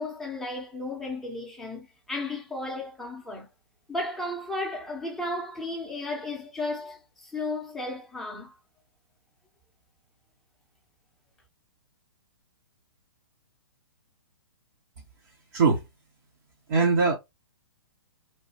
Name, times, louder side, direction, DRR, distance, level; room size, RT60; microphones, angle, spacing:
voice 1, 0.0-3.5 3.9-8.5, left 2 dB, ahead, 0.8 m, -34 dB
voice 2, 15.5-15.8 16.7-17.1, right 4 dB, 50° right, 0.9 m, -21 dB
3.2 x 2.2 x 2.8 m
figure-of-eight pair, 120°, 13 cm